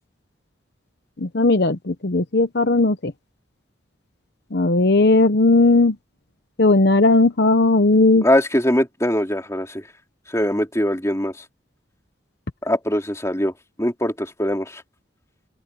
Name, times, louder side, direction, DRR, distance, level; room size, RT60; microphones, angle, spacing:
voice 1, 1.2-3.1 4.5-5.9 6.6-8.2, left 2 dB, 55° left, 0.9 m, -16 dB
voice 2, 8.2-9.9 10.3-11.4 12.6-13.5 13.8-14.8, left 1 dB, 15° left, 3.1 m, -22 dB
open air
head